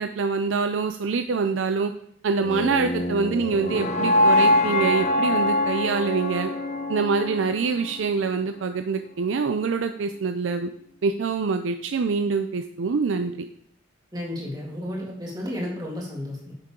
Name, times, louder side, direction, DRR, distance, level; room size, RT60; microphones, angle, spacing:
voice 1, 0.0-1.9 2.2-6.5 6.9-10.7 11.0-13.4, right 4 dB, 80° right, 8 dB, 0.4 m, -25 dB
sound 1, 2.4-8.5, left 1 dB, 35° left, 0.9 m, -24 dB
voice 2, 14.1-16.5, left 1 dB, 20° right, -3 dB, 2.3 m, -32 dB
9.3 x 6.7 x 3.8 m, 0.67 s
head